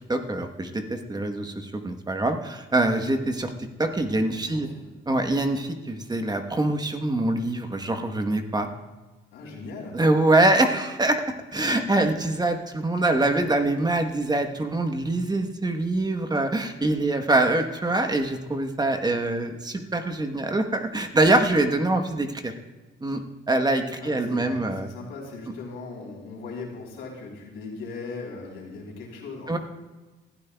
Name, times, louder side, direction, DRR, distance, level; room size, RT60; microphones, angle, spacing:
voice 1, 0.1-3.5 3.8-4.7 5.1-8.7 9.9-11.2 11.5-22.5 23.0-23.2 23.5-24.9 29.5-29.6, right 2 dB, 20° right, 6 dB, 1.1 m, -24 dB
voice 2, 4.3-4.9 9.3-10.0 24.0-29.6, left 4 dB, 90° left, -2 dB, 3.6 m, -39 dB
19.0 x 12.5 x 2.3 m, 1.2 s
cardioid pair, 90°, 20 cm